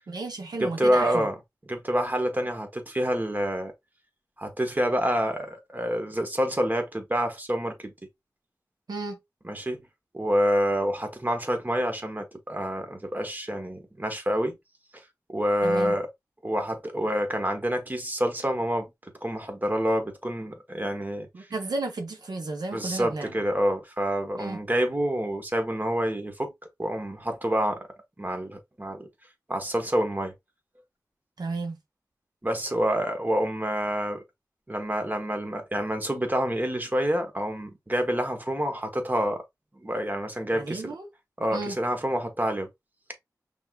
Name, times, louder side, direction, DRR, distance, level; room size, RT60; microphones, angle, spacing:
voice 1, 0.1-1.3 8.9-9.2 15.6-16.0 21.3-23.3 24.4-24.6 31.4-31.8 40.5-41.1 41.5-41.8, right 3 dB, 90° right, 0.9 m, -33 dB
voice 2, 0.6-1.3 1.7-3.7 4.4-7.9 9.4-9.8 10.1-14.6 15.3-16.1 16.4-21.3 22.7-26.5 26.8-27.9 28.2-29.1 29.5-30.3 32.4-34.2 34.7-39.4 39.8-40.9 41.4-42.7, equal, 25° right, 1.3 m, -27 dB
5.8 x 3.7 x 2.3 m
wide cardioid pair, 55°, 7 cm